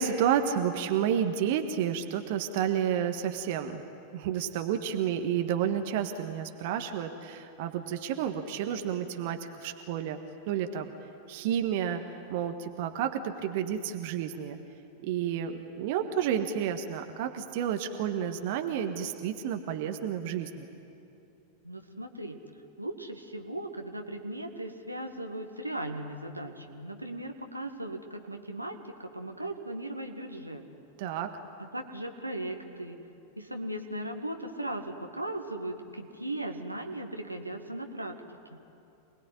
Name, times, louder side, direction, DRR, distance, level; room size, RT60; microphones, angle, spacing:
voice 1, 0.0-3.8 4.1-10.2 10.5-10.9 11.3-12.0 12.3-14.6 15.0-20.7 31.0-31.3, right 9 dB, 50° right, 7 dB, 1.4 m, -30 dB
voice 2, 21.6-22.4 22.8-30.6 31.6-33.0 33.4-38.6, right 1 dB, 85° right, 4 dB, 1.8 m, -38 dB
27.0 x 20.5 x 9.8 m, 2.8 s
figure-of-eight pair, 90°, 0 cm